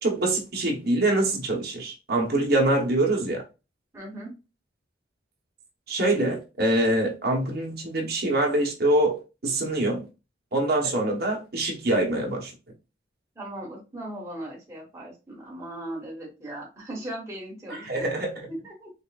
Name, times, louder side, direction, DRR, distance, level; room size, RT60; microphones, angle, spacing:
voice 1, 0.0-3.4 5.9-10.0 10.5-12.5 17.7-18.5, right 1 dB, 55° right, 1.1 m, -24 dB
voice 2, 3.9-4.3 10.8-11.0 13.3-18.2 18.5-18.9, right 1 dB, 15° right, 1.6 m, -38 dB
5.3 x 2.5 x 2.4 m
head